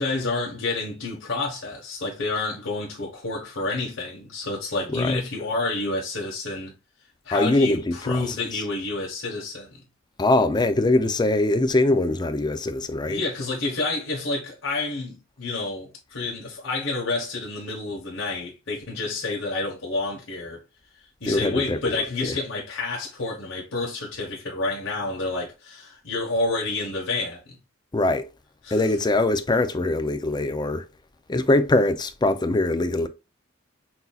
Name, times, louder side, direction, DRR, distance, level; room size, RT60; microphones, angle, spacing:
voice 1, 0.0-6.7 7.2-9.8 13.1-20.6 21.2-27.6 28.6-28.8, left 3 dB, 85° left, 1.2 m, -29 dB
voice 2, 7.3-8.4 10.2-13.2 21.2-22.3 27.9-28.3 28.7-30.8 31.3-33.1, left 2 dB, 20° left, 0.5 m, -22 dB
5.9 x 2.8 x 2.3 m
head